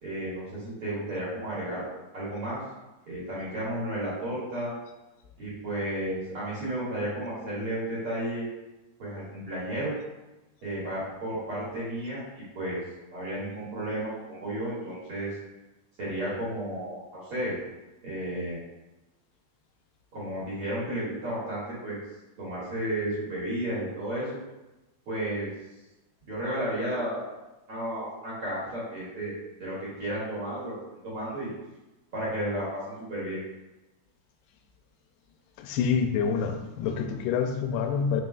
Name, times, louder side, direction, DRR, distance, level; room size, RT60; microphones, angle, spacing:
voice 1, 0.0-1.9 2.1-2.6 3.1-4.7 5.4-8.5 9.0-10.0 10.6-12.2 12.5-12.8 13.1-15.3 16.0-17.5 18.0-18.6 20.1-22.0 22.4-24.4 25.1-25.5 26.3-27.2 27.7-29.3 29.6-30.7 31.0-31.5 32.1-33.4, right 1 dB, 45° right, -9 dB, 2.2 m, -32 dB
voice 2, 35.6-38.2, left 6 dB, 85° left, 5 dB, 2.6 m, -27 dB
6.8 x 6.1 x 2.3 m, 1.0 s
omnidirectional pair, 4.6 m